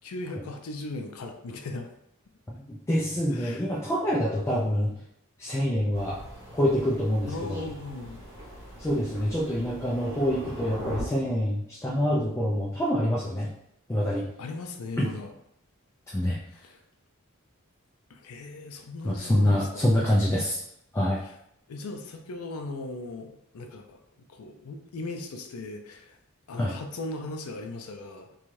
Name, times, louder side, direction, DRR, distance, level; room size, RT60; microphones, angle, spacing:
voice 1, 0.0-1.9 3.3-3.6 7.3-8.2 14.4-15.3 16.5-16.8 18.1-20.0 21.2-21.4 21.7-24.0 24.3-26.2 26.5-28.4, left 2 dB, 75° left, 4 dB, 0.4 m, -38 dB
voice 2, 2.9-4.9 5.4-6.2 6.5-7.6 8.8-13.5 13.9-14.3 15.0-15.1 16.1-16.4 19.0-20.6 20.9-21.2 26.6-26.7, equal, 10° left, -4 dB, 0.3 m, -26 dB
Thunder, 5.9-11.0, equal, 50° right, 1.0 m, -41 dB
2.6 x 2.3 x 3.1 m, 0.75 s
head